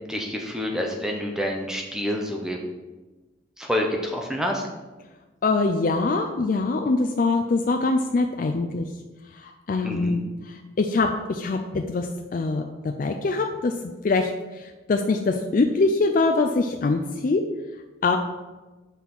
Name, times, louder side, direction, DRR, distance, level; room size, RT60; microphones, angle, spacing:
voice 1, 0.1-2.6 3.6-4.7 9.8-10.2, left 1 dB, 5° right, 1 dB, 0.7 m, -28 dB
voice 2, 5.4-8.9 9.3-13.7 14.0-14.3 14.5-17.4 18.0-18.2, left 3 dB, 45° left, 5 dB, 0.3 m, -23 dB
5.6 x 4.1 x 6.0 m, 1.2 s
head